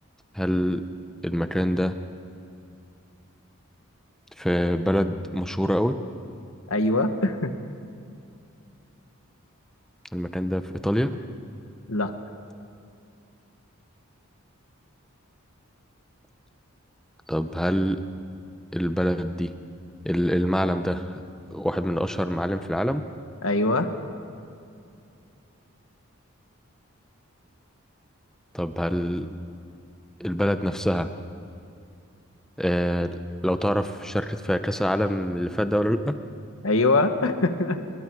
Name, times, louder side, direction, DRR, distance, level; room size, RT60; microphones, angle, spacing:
voice 1, 0.3-0.8 1.2-1.9 4.4-5.9 10.1-11.2 17.3-18.0 18.7-19.5 20.0-21.2 21.5-23.0 28.5-29.3 30.2-31.1 32.6-36.1, equal, ahead, 8 dB, 0.7 m, -25 dB
voice 2, 6.7-7.5 11.9-12.1 23.4-23.9 36.6-37.8, left 2 dB, 75° left, 7 dB, 1.5 m, -22 dB
29.5 x 22.0 x 4.8 m, 2.5 s
head